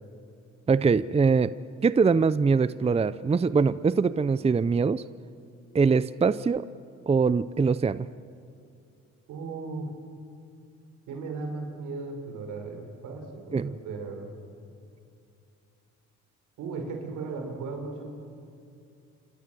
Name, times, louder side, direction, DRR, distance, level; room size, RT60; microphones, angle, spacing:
voice 1, 0.7-1.5 1.8-5.0 5.7-6.7 7.1-8.1 13.5-13.7, right 5 dB, 20° right, 16 dB, 0.6 m, -23 dB
voice 2, 9.3-9.9 11.1-14.3 16.6-18.1, right 4 dB, 85° right, 4 dB, 5.2 m, -36 dB
27.5 x 26.5 x 7.8 m, 2.5 s
cardioid pair, 90°, 30 cm